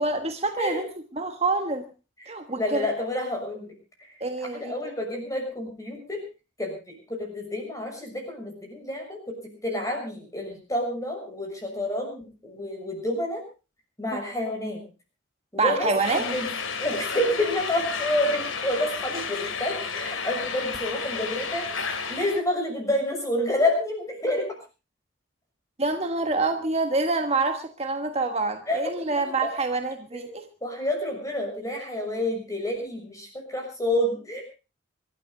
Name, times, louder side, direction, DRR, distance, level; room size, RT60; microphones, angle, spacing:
voice 1, 0.0-1.8 2.3-2.9 4.2-4.8 14.1-14.2 15.6-16.3 25.8-30.5, right 3 dB, 30° right, 6 dB, 1.3 m, -26 dB
voice 2, 2.6-3.7 4.4-6.2 6.6-9.2 9.6-13.4 14.0-14.8 15.5-16.5 16.8-24.4 28.7-28.8 29.2-29.5 30.1-34.4, left 1 dB, 15° left, 2 dB, 6.5 m, -29 dB
sound 1, 16.0-22.4, left 5 dB, 90° left, 2.6 m, -32 dB
26.0 x 12.5 x 3.8 m, 0.33 s
head